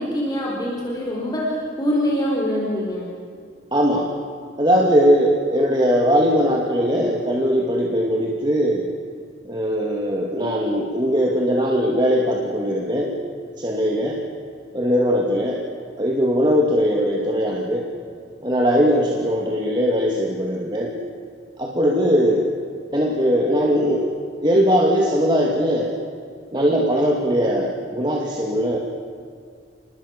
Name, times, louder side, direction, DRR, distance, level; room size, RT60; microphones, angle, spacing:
voice 1, 0.0-3.1, equal, 20° left, -3 dB, 4.6 m, -24 dB
voice 2, 3.7-4.1 4.6-8.9 9.5-13.1 13.6-14.2 14.7-15.6 16.0-17.9 18.4-20.9 21.6-22.5 22.9-24.1 24.4-25.9 26.5-28.8, equal, 25° right, -1 dB, 2.6 m, -20 dB
29.0 x 20.5 x 8.4 m, 2.3 s
head